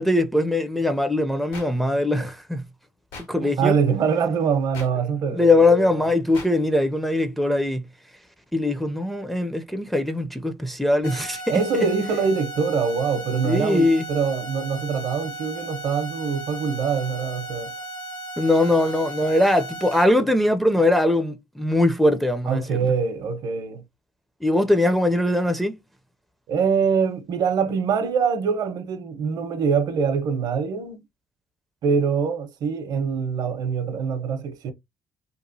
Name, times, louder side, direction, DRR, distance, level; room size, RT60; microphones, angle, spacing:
voice 1, 0.0-2.6 3.3-3.8 5.3-7.8 8.5-11.4 13.4-14.1 18.4-22.9 24.4-25.8, left 1 dB, ahead, 0.4 m, -21 dB
sound 1, 1.5-1.7 3.1-3.3 4.7-4.9 6.3-6.5, left 4 dB, 85° left, 1.5 m, -37 dB
voice 2, 3.4-6.1 11.5-17.7 22.5-23.8 26.5-31.0 31.8-34.7, right 6 dB, 60° right, 0.7 m, -24 dB
sound 2, 11.0-20.0, right 1 dB, 65° left, 0.8 m, -36 dB
2.9 x 2.4 x 2.6 m
cardioid pair, 95°, 7 cm